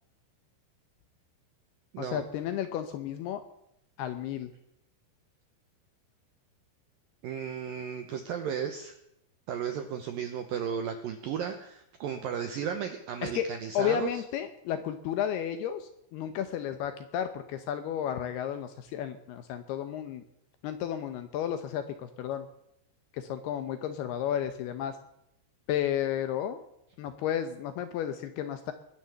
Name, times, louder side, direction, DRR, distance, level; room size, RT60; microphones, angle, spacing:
voice 1, 2.0-3.4 4.0-4.5 13.2-13.5 13.7-20.2 20.6-22.5 23.1-25.0 25.7-26.6 27.0-28.7, left 10 dB, 75° left, 9 dB, 2.5 m, -32 dB
voice 2, 7.2-9.0 9.5-14.1, right 8 dB, 80° right, 7 dB, 2.0 m, -34 dB
21.0 x 9.5 x 7.0 m, 0.79 s
omnidirectional pair, 5.4 m